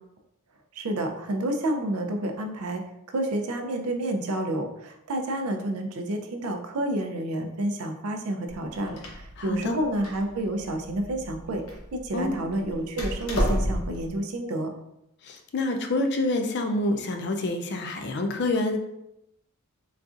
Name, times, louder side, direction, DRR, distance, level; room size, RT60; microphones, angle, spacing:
voice 1, 0.7-2.8 3.1-11.6 11.9-14.7, right 1 dB, 75° right, 5 dB, 0.5 m, -29 dB
Door, 8.5-14.1, equal, 70° left, 0.7 m, -32 dB
voice 2, 9.4-9.8 12.1-12.4 15.2-18.8, left 2 dB, 50° left, 4 dB, 0.4 m, -27 dB
3.9 x 2.5 x 2.4 m, 0.84 s
head